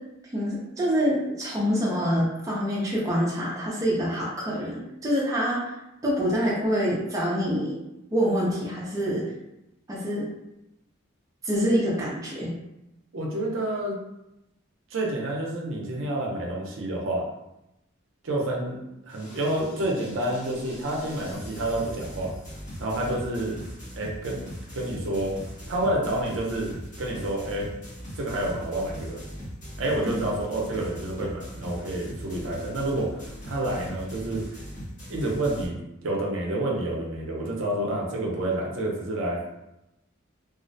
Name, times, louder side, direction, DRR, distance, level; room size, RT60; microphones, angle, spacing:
voice 1, 0.3-5.8 6.0-7.8 8.1-9.3 9.9-10.3 11.4-12.5 30.1-30.2, equal, 15° right, -5 dB, 0.4 m, -26 dB
voice 2, 13.1-14.0 14.9-17.2 18.2-22.3 22.8-23.6 23.9-24.4 24.7-25.3 25.7-26.7 27.0-27.7 28.2-29.2 29.8-34.4 35.1-39.4, right 1 dB, 65° right, -2 dB, 0.5 m, -29 dB
sound 1, 19.1-35.7, equal, 35° left, 0.8 m, -40 dB
2.4 x 2.0 x 2.6 m, 0.90 s
head